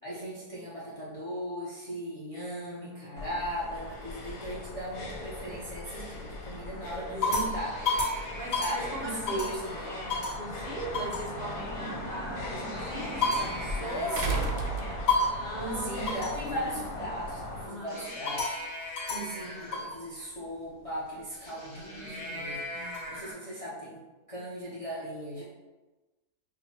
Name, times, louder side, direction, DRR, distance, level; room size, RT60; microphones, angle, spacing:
voice 1, 0.0-7.8 8.6-10.0 13.7-14.4 15.6-18.6 19.0-22.6 23.1-24.0 24.3-25.4, right 1 dB, 40° left, -6 dB, 0.5 m, -37 dB
voice 2, 2.7-3.3 7.0-7.4 8.3-16.2 17.6-18.1 19.4-19.8 21.7-23.2, equal, 35° right, -7 dB, 0.7 m, -40 dB
sound 1, 3.2-17.7, left 2 dB, 85° left, 1.3 m, -39 dB
sound 2, 4.8-5.5 6.0-6.4 6.9-9.7 10.1-10.4 10.9-11.3 12.4-14.6 15.1-15.5 16.1-16.4 17.9-20.0 21.3-23.3, left 3 dB, 55° left, 1.5 m, -33 dB
sound 3, 10.9-11.0 14.2-15.5 16.8-16.9, right 5 dB, 70° right, 0.7 m, -32 dB
6.2 x 2.2 x 2.9 m, 1.2 s
omnidirectional pair, 1.7 m